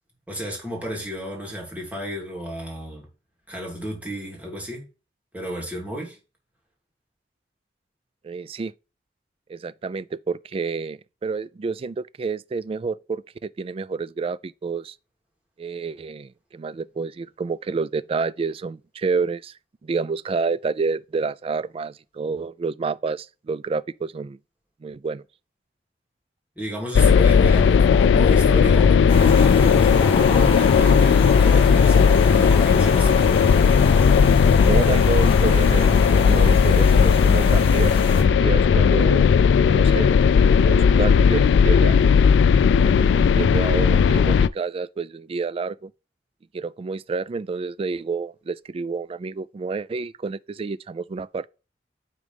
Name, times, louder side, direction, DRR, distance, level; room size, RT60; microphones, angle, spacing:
voice 1, 0.3-3.1 3.5-4.9 5.3-6.2 26.6-33.3, right 1 dB, 10° right, 2.6 m, -33 dB
voice 2, 8.2-8.7 9.5-14.9 15.6-19.5 19.8-24.4 24.8-25.2 34.6-38.0 38.4-39.3 39.7-40.2 40.5-42.0 42.8-45.9 46.5-51.5, right 4 dB, 35° right, 0.3 m, -29 dB
sound 1, 26.9-44.5, left 6 dB, 85° left, 0.3 m, -16 dB
sound 2, 29.1-38.2, left 1 dB, 30° left, 1.7 m, -29 dB
9.5 x 3.9 x 3.4 m
head